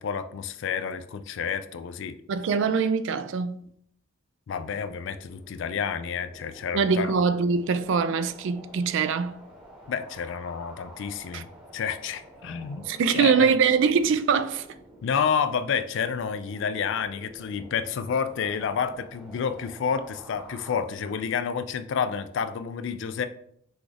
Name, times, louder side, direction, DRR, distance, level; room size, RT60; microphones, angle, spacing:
voice 1, 0.0-2.2 4.5-7.1 9.9-11.5 11.7-13.5 15.0-23.3, left 6 dB, 60° left, 0.3 m, -29 dB
voice 2, 2.3-3.6 6.7-9.4 11.3-11.4 12.9-14.7, right 5 dB, 65° right, 0.3 m, -23 dB
sound 1, 4.5-20.8, equal, 5° right, 0.9 m, -49 dB
6.1 x 2.4 x 3.3 m
head